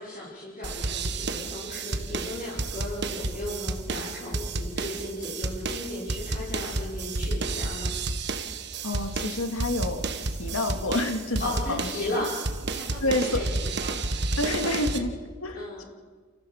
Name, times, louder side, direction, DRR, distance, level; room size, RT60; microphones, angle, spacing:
voice 1, 0.0-7.9 11.4-12.4 12.6-14.0 14.5-14.8 15.5-15.9, left 1 dB, 40° left, -8 dB, 5.8 m, -36 dB
sound 1, 0.6-15.0, right 3 dB, 55° right, 1.5 m, -31 dB
voice 2, 8.8-10.1 10.4-12.2 13.0-13.4 14.4-15.1 15.4-15.8, left 2 dB, 85° left, 5 dB, 2.4 m, -28 dB
29.5 x 15.0 x 7.3 m, 1.4 s
head